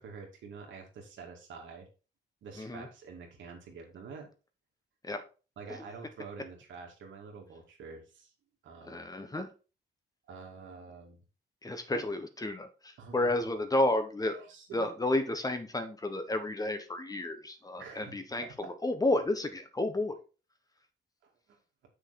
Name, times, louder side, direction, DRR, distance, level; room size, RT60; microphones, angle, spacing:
voice 1, 0.0-1.9 2.4-4.3 5.6-8.3 8.6-9.1 10.3-11.2 11.9-12.0 13.0-13.3 14.3-14.9 17.8-18.2 21.2-21.6, right 5 dB, 85° right, 1 dB, 2.5 m, -47 dB
voice 2, 2.6-2.9 5.0-5.2 8.8-9.5 11.6-14.4 14.7-20.1, left 1 dB, 20° left, 8 dB, 1.2 m, -31 dB
7.5 x 6.3 x 4.2 m, 0.33 s
cardioid pair, 120°, 19 cm